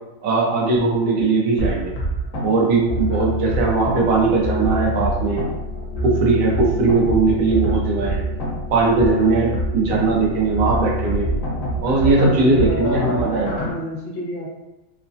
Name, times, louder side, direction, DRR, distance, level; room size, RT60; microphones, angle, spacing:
voice 1, 0.2-1.9 2.4-5.4 6.0-8.3 8.7-11.3 11.8-13.6, right 3 dB, 75° right, -2 dB, 1.0 m, -19 dB
sound 1, 1.6-13.7, equal, 70° left, 1.1 m, -26 dB
voice 2, 11.8-14.5, left 1 dB, 35° left, -6 dB, 1.0 m, -28 dB
3.1 x 2.1 x 2.5 m, 0.97 s
omnidirectional pair, 1.4 m